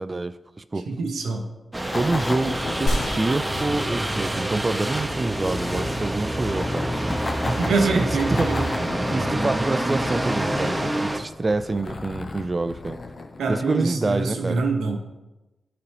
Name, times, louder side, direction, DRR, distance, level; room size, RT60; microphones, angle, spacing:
voice 1, 0.0-0.9 1.9-7.2 7.8-8.5 9.1-13.0 13.5-14.6, right 2 dB, 40° right, 13 dB, 0.4 m, -27 dB
voice 2, 0.9-1.4 7.4-8.7 13.4-15.0, right 4 dB, 90° right, 3 dB, 0.8 m, -25 dB
sound 1, 1.7-11.2, right 1 dB, 20° right, 0.8 m, -27 dB
sound 2, 1.9-14.1, left 3 dB, 55° left, 0.6 m, -35 dB
sound 3, 2.9-4.8 5.1-5.2, equal, 80° left, 1.0 m, -30 dB
10.5 x 4.0 x 3.3 m, 1.1 s
supercardioid pair, 40°, 0 cm